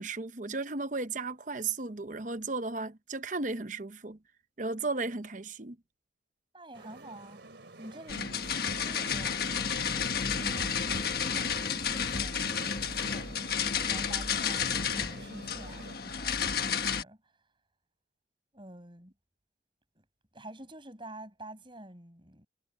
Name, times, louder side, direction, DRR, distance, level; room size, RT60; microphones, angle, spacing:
voice 1, 0.0-4.2 4.6-5.8, right 3 dB, 40° right, 0.9 m, -35 dB
voice 2, 6.5-17.3 18.5-19.1 20.0-20.1 20.3-22.5, right 1 dB, 25° right, 7.3 m, -49 dB
sound 1, 6.7-16.0, right 2 dB, 65° right, 3.2 m, -49 dB
sound 2, 8.1-17.0, left 6 dB, 50° left, 1.5 m, -31 dB
head